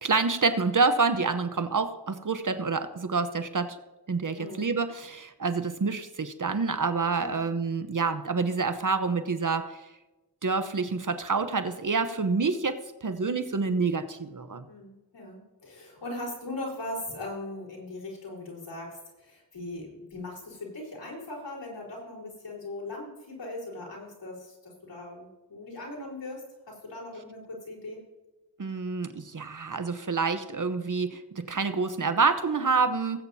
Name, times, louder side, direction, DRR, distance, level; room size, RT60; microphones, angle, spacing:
voice 1, 0.0-3.8 4.1-9.8 10.4-14.7 28.6-33.2, right 4 dB, 45° right, 9 dB, 0.9 m, -27 dB
voice 2, 4.3-4.7 7.2-7.4 14.7-28.0, left 2 dB, 90° left, -4 dB, 4.5 m, -39 dB
18.5 x 8.9 x 2.8 m, 1.1 s
cardioid pair, 55°, 42 cm